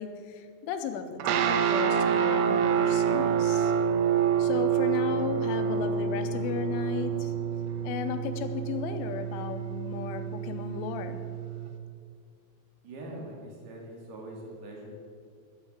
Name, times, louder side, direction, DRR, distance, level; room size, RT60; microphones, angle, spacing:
voice 1, 0.0-3.7 4.4-7.3 7.8-11.2, left 8 dB, 90° left, 8 dB, 3.4 m, -35 dB
sound 1, 1.2-11.7, right 7 dB, 80° right, 2.4 m, -27 dB
voice 2, 12.8-14.9, right 1 dB, 60° right, -1 dB, 3.8 m, -42 dB
13.5 x 9.6 x 6.5 m, 2.2 s
omnidirectional pair, 5.4 m